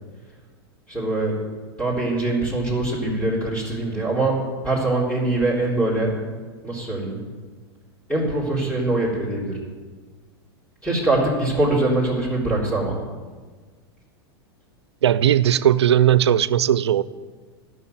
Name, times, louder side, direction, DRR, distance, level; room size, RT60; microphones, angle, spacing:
voice 1, 0.9-1.4 1.8-6.2 6.6-7.2 8.1-9.6 10.8-13.0, right 2 dB, 10° left, 3.7 m, -23 dB
voice 2, 15.0-17.0, right 10 dB, 85° right, 0.5 m, -17 dB
12.5 x 6.3 x 9.3 m
hypercardioid pair, 105°, 14 cm